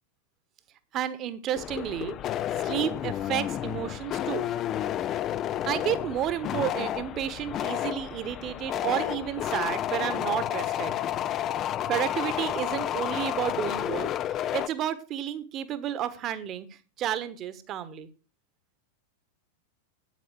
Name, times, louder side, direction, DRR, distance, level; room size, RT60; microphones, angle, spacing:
voice 1, 0.9-2.2 2.6-4.5 5.7-11.0 11.9-16.7 17.0-18.1, right 10 dB, 35° right, 14 dB, 1.3 m, -31 dB
sound 1, 1.5-14.7, left 11 dB, 30° left, 0.5 m, -31 dB
9.0 x 8.5 x 6.3 m, 0.35 s
figure-of-eight pair, 90°, 0 cm